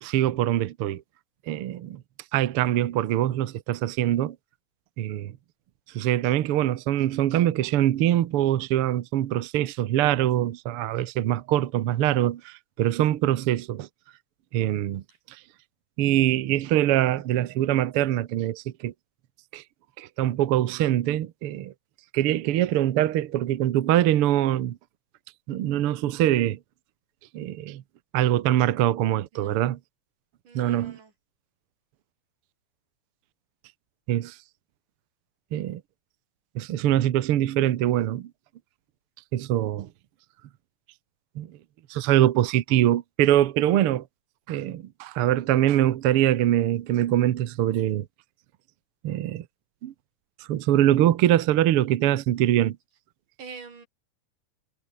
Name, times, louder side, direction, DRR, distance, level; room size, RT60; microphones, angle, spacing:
voice 1, 0.0-1.0 1.5-2.0 2.3-4.4 5.0-5.3 5.9-13.9 14.5-15.0 15.3-15.4 16.0-18.9 19.5-19.6 20.0-21.7 22.1-24.8 25.5-26.6 27.3-27.8 28.1-29.8 30.5-31.0 34.1-34.4 35.5-35.8 36.5-38.3 39.3-39.9 41.3-41.5 41.9-44.0 44.5-48.0 49.0-49.4 49.8-49.9 50.5-52.8, right 12 dB, 60° right, 1.5 m, -23 dB
voice 2, 29.3-29.6 30.4-31.1 53.4-53.9, right 5 dB, 85° right, 6.5 m, -44 dB
omnidirectional pair, 3.6 m